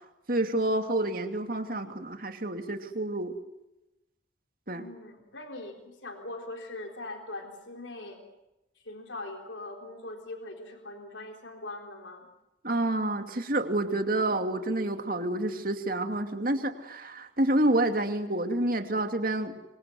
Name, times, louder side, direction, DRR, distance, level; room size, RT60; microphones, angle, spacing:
voice 1, 0.3-3.3 4.7-4.8 12.6-19.5, right 1 dB, 50° right, 7 dB, 2.6 m, -28 dB
voice 2, 4.7-8.2 8.8-12.3, left 2 dB, 75° left, 4 dB, 3.9 m, -41 dB
26.5 x 25.5 x 7.9 m, 0.93 s
head